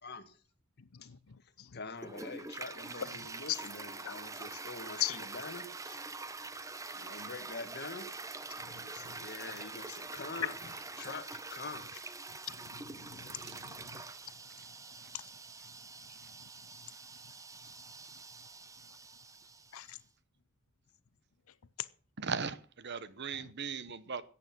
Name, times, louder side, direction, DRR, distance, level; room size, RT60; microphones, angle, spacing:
voice 1, 0.0-0.4 1.0-1.1 1.4-6.0 6.9-8.1 8.7-12.0, left 3 dB, 50° left, 1.8 m, -45 dB
Toilet flush, 2.0-19.9, right 3 dB, 15° right, 0.7 m, -45 dB
voice 2, 8.6-9.1 12.5-14.0 19.7-20.0 23.3-23.5, left 14 dB, 85° left, 0.7 m, -41 dB
voice 3, 22.2-24.2, right 5 dB, 55° right, 0.9 m, -38 dB
14.5 x 8.8 x 6.1 m
head